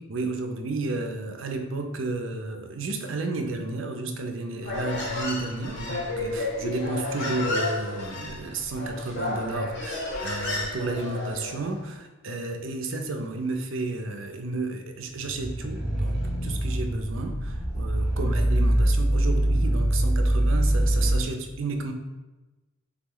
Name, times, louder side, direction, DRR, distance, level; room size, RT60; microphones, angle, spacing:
voice 1, 0.1-21.9, right 3 dB, 75° right, 5 dB, 0.5 m, -32 dB
Human voice, 4.6-11.7, left 2 dB, 60° left, 0.9 m, -31 dB
sound 1, 15.2-21.3, right 1 dB, 5° right, 0.7 m, -24 dB
3.6 x 3.0 x 3.8 m, 1.1 s
head